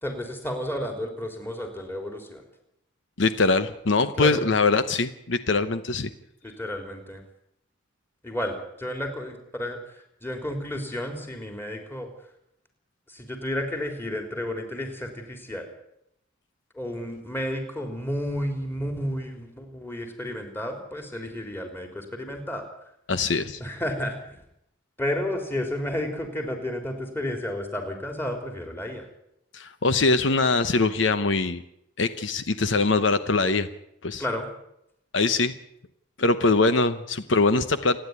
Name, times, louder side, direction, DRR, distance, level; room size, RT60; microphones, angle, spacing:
voice 1, 0.0-2.4 4.2-4.4 6.4-7.2 8.2-12.1 13.1-15.7 16.7-22.7 23.6-24.4 25.0-29.1 34.2-34.5, left 1 dB, 10° left, 4 dB, 3.6 m, -32 dB
voice 2, 3.2-6.1 23.1-23.6 29.5-31.6 32.0-33.7 34.0-34.2 35.1-35.5 36.2-38.0, left 3 dB, 65° left, 11 dB, 1.0 m, -22 dB
28.0 x 10.5 x 9.6 m, 0.80 s
head